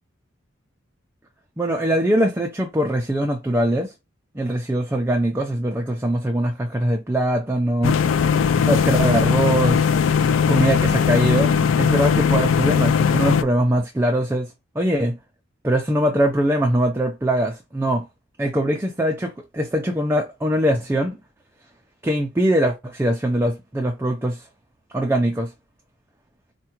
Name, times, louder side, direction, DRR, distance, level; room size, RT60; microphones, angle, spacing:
voice 1, 1.6-3.9 4.3-8.0 8.7-9.9 10.5-15.2 15.6-18.1 18.4-21.2 22.0-24.4 24.9-25.5, right 1 dB, 15° right, 0.4 m, -22 dB
sound 1, 7.8-13.4, left 6 dB, 85° left, 0.3 m, -19 dB
4.5 x 2.2 x 2.9 m
head